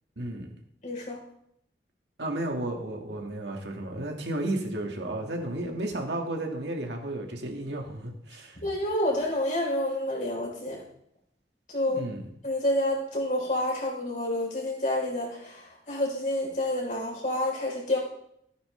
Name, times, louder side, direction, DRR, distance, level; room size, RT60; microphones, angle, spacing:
voice 1, 0.2-0.5 2.2-8.6 11.9-12.2, right 1 dB, 80° right, 1 dB, 1.9 m, -33 dB
voice 2, 0.8-1.2 8.6-10.8 11.7-12.1 12.4-18.0, left 1 dB, 45° left, -2 dB, 3.9 m, -29 dB
15.0 x 9.5 x 3.3 m, 0.73 s
head